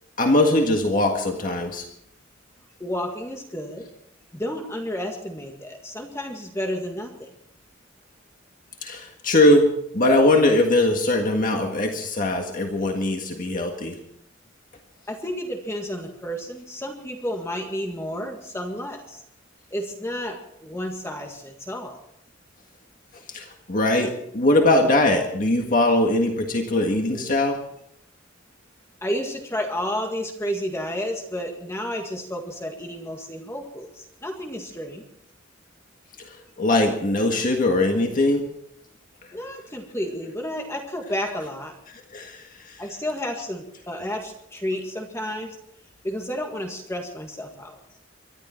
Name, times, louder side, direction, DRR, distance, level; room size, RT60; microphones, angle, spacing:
voice 1, 0.2-1.8 8.8-9.7 9.9-14.0 23.3-27.6 36.6-38.5 42.1-42.4, left 1 dB, 45° left, 3 dB, 1.7 m, -21 dB
voice 2, 2.8-3.8 4.3-7.3 15.1-19.2 19.7-22.0 29.0-35.0 39.3-41.7 42.8-45.6 46.0-47.8, equal, 15° left, 2 dB, 1.8 m, -31 dB
24.0 x 12.0 x 4.4 m, 0.73 s
head